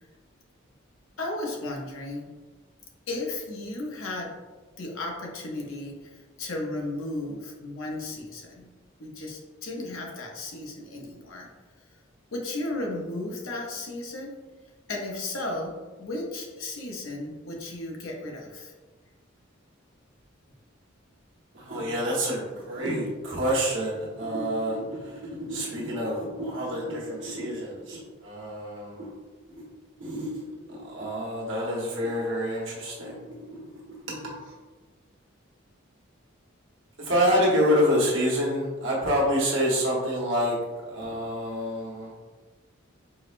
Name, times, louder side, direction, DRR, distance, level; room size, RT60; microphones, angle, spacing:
voice 1, 1.2-2.3 3.1-4.3 4.8-8.7 9.0-11.5 12.3-14.3 14.9-15.7 16.0-18.7, left 2 dB, 85° left, 0 dB, 0.7 m, -34 dB
voice 2, 21.5-25.1 25.5-29.1 30.0-30.4 30.7-33.2 33.5-33.6 34.0-34.3 37.0-40.6 40.9-42.1, equal, 70° right, -5 dB, 1.1 m, -27 dB
4.7 x 2.1 x 2.5 m, 1.3 s
head